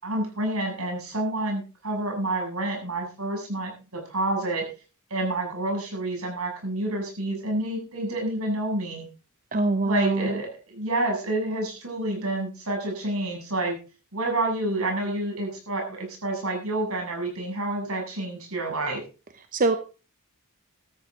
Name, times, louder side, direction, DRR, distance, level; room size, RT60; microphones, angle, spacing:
voice 1, 0.0-4.6 5.1-9.1 9.8-13.8 14.1-19.0, right 2 dB, 80° right, 1 dB, 7.2 m, -28 dB
voice 2, 9.5-10.4 19.5-19.8, right 2 dB, 40° right, 9 dB, 0.9 m, -23 dB
14.0 x 13.5 x 3.8 m, 0.34 s
head